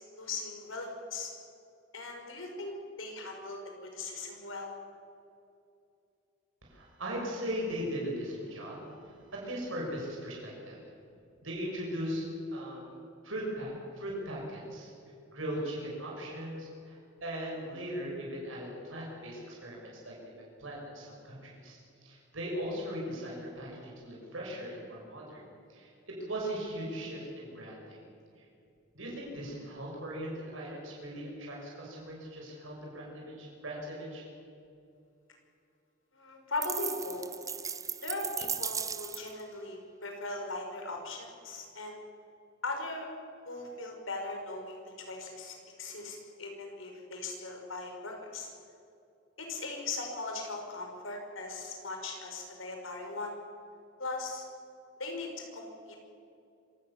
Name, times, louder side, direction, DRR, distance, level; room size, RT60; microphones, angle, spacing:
voice 1, 0.1-1.3 1.9-2.7 3.0-4.7 36.1-37.3 38.0-42.0 42.6-43.1 43.4-48.5 49.4-53.4 54.0-54.4 55.0-56.0, left 3 dB, 85° left, 2 dB, 5.3 m, -39 dB
voice 2, 6.6-10.8 11.4-12.9 13.2-14.9 15.3-25.4 25.7-28.0 28.4-28.5 28.9-34.2, equal, 80° right, -2 dB, 6.4 m, -39 dB
sound 1, 36.6-39.4, right 6 dB, 15° right, 0.6 m, -36 dB
26.5 x 17.0 x 7.2 m, 2.5 s
head